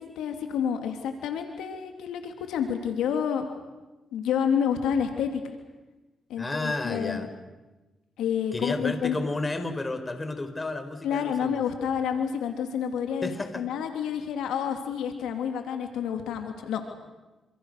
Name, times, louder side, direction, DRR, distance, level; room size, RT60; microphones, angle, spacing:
voice 1, 0.0-3.5 4.1-5.4 6.3-7.3 8.2-9.2 11.0-13.3 13.6-16.8, left 8 dB, 90° left, 5 dB, 2.8 m, -29 dB
voice 2, 6.4-7.3 8.5-11.6 13.2-13.6, left 2 dB, 25° left, 8 dB, 4.4 m, -32 dB
28.0 x 27.0 x 6.6 m, 1.1 s
cardioid pair, 65°, 0 cm